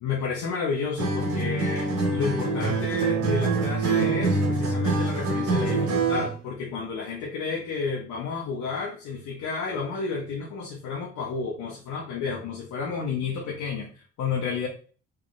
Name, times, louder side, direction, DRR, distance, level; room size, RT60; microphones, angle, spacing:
voice 1, 0.0-14.7, left 5 dB, 90° left, -2 dB, 0.8 m, -31 dB
Acoustic guitar, 1.0-6.4, right 3 dB, 70° right, 1.5 m, -25 dB
3.5 x 3.2 x 2.5 m, 0.39 s
cardioid pair, 90°, 30 cm